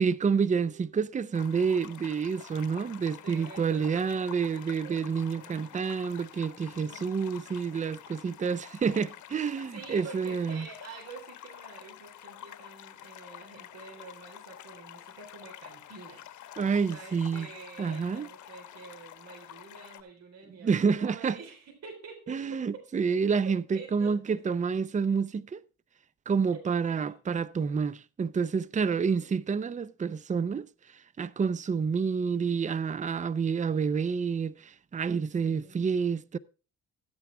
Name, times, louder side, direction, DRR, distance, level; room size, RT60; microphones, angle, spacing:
voice 1, 0.0-10.7 16.6-17.5 17.8-18.3 20.6-21.4 22.3-25.6 26.3-30.7 31.2-36.4, right 5 dB, 25° right, 0.6 m, -28 dB
voice 2, 0.6-1.0 3.0-5.1 5.4-5.8 6.7-7.4 9.7-16.6 16.9-22.8 23.3-23.4 23.7-24.6 26.9-27.2 28.8-29.4 35.4-35.8, right 4 dB, 60° right, 4.0 m, -48 dB
sound 1, 1.3-20.0, left 11 dB, 75° left, 1.1 m, -48 dB
13.0 x 9.3 x 3.4 m
cardioid pair, 90°, 30 cm